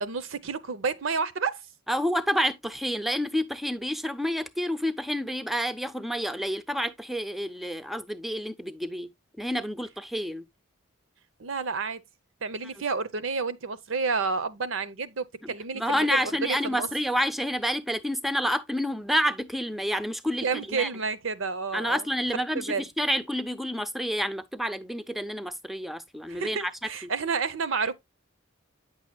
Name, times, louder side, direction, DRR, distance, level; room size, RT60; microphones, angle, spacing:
voice 1, 0.0-1.6 11.4-12.0 12.4-16.9 20.4-22.0 22.5-22.9 26.3-27.9, right 5 dB, 65° right, 0.7 m, -30 dB
voice 2, 1.9-9.1 9.4-10.4 15.4-20.9 21.7-26.7 27.0-27.1, equal, ahead, 0.5 m, -29 dB
9.1 x 6.2 x 2.2 m
head